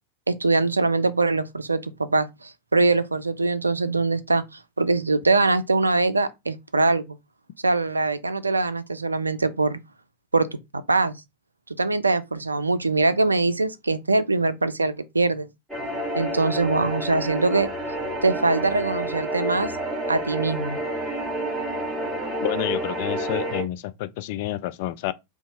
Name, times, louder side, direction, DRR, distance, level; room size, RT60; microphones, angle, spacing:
voice 1, 0.3-7.2 7.6-9.8 10.3-10.5 10.7-11.2 11.8-15.5 16.2-17.7 18.2-19.7 20.1-20.8, right 3 dB, 80° right, 0.3 m, -23 dB
sound 1, 15.7-23.6, right 1 dB, ahead, 1.4 m, -29 dB
voice 2, 22.4-25.1, left 14 dB, 50° left, 0.3 m, -29 dB
2.8 x 2.3 x 4.1 m
figure-of-eight pair, 90°, 0 cm